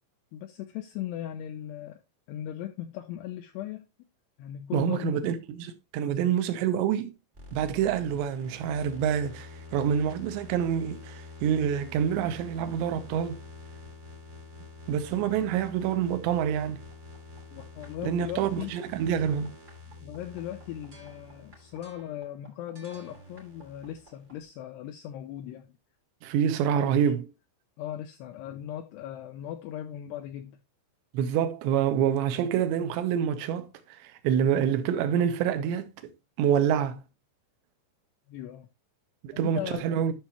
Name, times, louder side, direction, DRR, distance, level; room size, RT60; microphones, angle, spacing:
voice 1, 0.3-2.0 2.3-3.9 4.4-5.2 15.1-15.3 17.5-18.7 20.0-25.7 26.8-27.1 27.8-30.6 38.3-38.7 39.3-39.8, left 11 dB, 85° left, 2.4 m, -38 dB
voice 2, 4.7-7.1 7.5-13.4 14.9-16.8 18.0-19.5 26.2-27.3 31.1-35.9 36.4-37.0 39.2-40.1, right 9 dB, 80° right, 2.9 m, -27 dB
sound 1, 7.3-24.5, left 3 dB, 50° right, 0.8 m, -47 dB
11.5 x 5.9 x 2.9 m
omnidirectional pair, 5.5 m